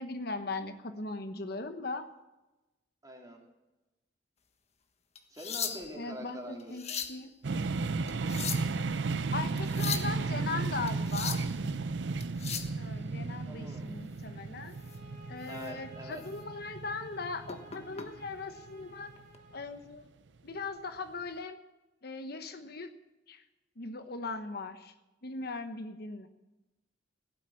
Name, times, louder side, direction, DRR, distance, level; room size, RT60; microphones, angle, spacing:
voice 1, 0.0-2.1 6.0-6.8 7.1-7.3 9.3-11.4 12.7-14.8 15.3-19.1 19.5-20.1 20.4-21.6 22.0-22.9 23.3-23.4 23.8-24.9 25.2-26.3, left 3 dB, 60° left, 8 dB, 1.1 m, -39 dB
voice 2, 3.0-3.4 5.3-7.0 13.5-14.0 15.4-16.2, equal, 20° right, 0 dB, 3.1 m, -45 dB
sound 1, 5.2-6.1 6.6-7.2 8.1-8.8 9.6-10.1 10.9-11.5 12.2-12.7 14.8-15.0 15.5-15.7 16.2-16.3 17.5-18.1 19.2-19.4, left 7 dB, 40° left, 1.4 m, -37 dB
sound 2, 7.4-19.2, right 3 dB, 75° right, 0.6 m, -34 dB
sound 3, 14.7-19.7, equal, 50° right, 2.9 m, -55 dB
16.5 x 9.1 x 8.6 m, 1.0 s
head